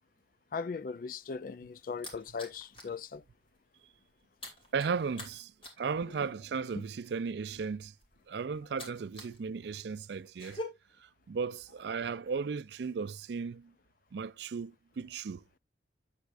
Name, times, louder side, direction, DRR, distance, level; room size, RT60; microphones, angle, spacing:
voice 1, 0.5-3.2 6.1-6.3 6.8-6.9, left 5 dB, 50° left, 0.4 m, -39 dB
sound 1, 1.2-3.0 3.3-3.6 3.8-9.4 9.7-10.6, left 1 dB, 30° left, 2.7 m, -47 dB
voice 2, 4.7-5.5 5.8-7.9 8.3-10.6 11.0-13.7 14.1-15.4, right 5 dB, 70° right, 0.4 m, -35 dB
9.0 x 8.1 x 2.5 m
head